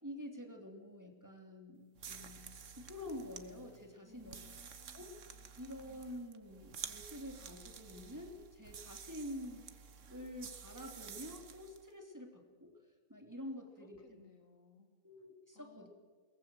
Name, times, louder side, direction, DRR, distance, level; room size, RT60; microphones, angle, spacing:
voice 1, 0.0-2.5 2.7-4.5 4.9-5.1 5.6-9.7 10.1-12.7 13.1-14.2 15.0-15.9, left 1 dB, 10° right, 2 dB, 2.8 m, -48 dB
Quit Sizzle Popcorn in Water, 1.9-11.8, right 6 dB, 60° right, 1.5 m, -51 dB
voice 2, 4.0-5.5 13.8-14.9 15.5-15.9, left 2 dB, 70° left, 6 dB, 2.6 m, -62 dB
22.0 x 19.5 x 7.6 m, 1.5 s
omnidirectional pair, 1.5 m